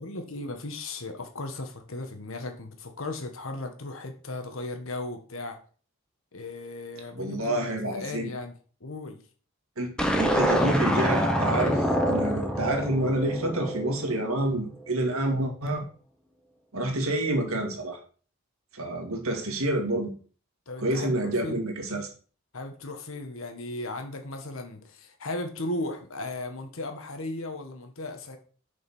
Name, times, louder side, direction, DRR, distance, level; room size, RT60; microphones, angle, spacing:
voice 1, 0.0-5.6 6.3-9.2 20.7-21.7 22.5-28.4, left 2 dB, 70° left, 1.4 m, -36 dB
voice 2, 7.1-8.3 9.8-15.9 16.7-18.0 18.7-20.1 20.8-22.1, right 1 dB, 80° right, 2.0 m, -28 dB
sound 1, 10.0-14.4, equal, 5° left, 0.9 m, -26 dB
6.8 x 5.4 x 5.4 m
head